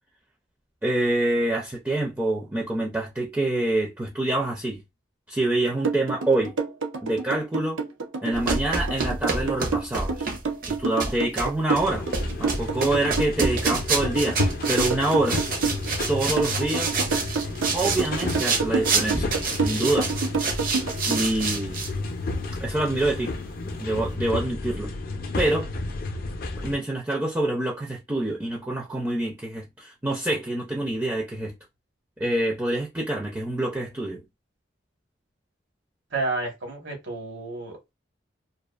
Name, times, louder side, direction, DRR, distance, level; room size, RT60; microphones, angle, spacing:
voice 1, 0.8-4.8 5.3-6.5 7.0-7.8 8.2-10.3 10.7-12.1 12.4-15.4 16.1-17.0 17.7-20.1 21.1-21.8 22.6-23.3 23.8-24.9 25.4-25.7 26.6-31.5 32.2-34.2, right 2 dB, 10° right, 0.4 m, -26 dB
sound 1, 5.8-21.2, right 4 dB, 90° right, 0.6 m, -28 dB
sound 2, 8.3-21.9, right 3 dB, 50° right, 0.6 m, -28 dB
sound 3, 11.7-26.8, left 3 dB, 45° left, 0.4 m, -32 dB
voice 2, 36.1-37.9, right 3 dB, 75° right, 1.2 m, -31 dB
2.4 x 2.4 x 2.3 m
head